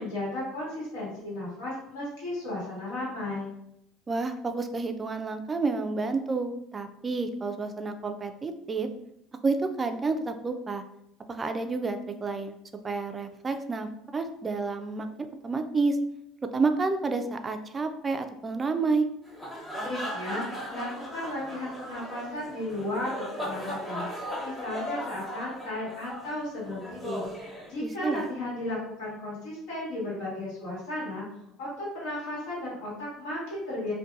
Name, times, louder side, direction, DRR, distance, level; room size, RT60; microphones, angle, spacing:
voice 1, 0.0-3.5 19.8-24.1 24.4-31.2 31.6-33.9, left 1 dB, 80° left, -6 dB, 1.2 m, -34 dB
voice 2, 4.1-8.9 9.4-10.8 11.3-12.6 12.8-16.0 16.5-19.1 27.8-28.2, right 3 dB, 25° right, 7 dB, 0.3 m, -30 dB
sound 1, 19.2-28.3, equal, 10° left, 0.9 m, -37 dB
2.6 x 2.2 x 2.4 m, 0.79 s
supercardioid pair, 85°, 0 cm